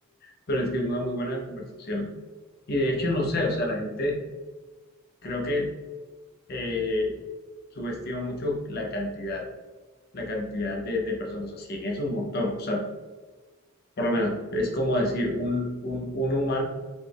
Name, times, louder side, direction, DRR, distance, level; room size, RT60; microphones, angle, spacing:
voice 1, 0.5-2.1 2.7-4.2 5.2-5.7 6.5-7.1 7.7-9.4 10.1-12.8 14.0-16.6, left 1 dB, 45° left, 0 dB, 0.6 m, -28 dB
4.1 x 2.3 x 3.3 m, 1.3 s
head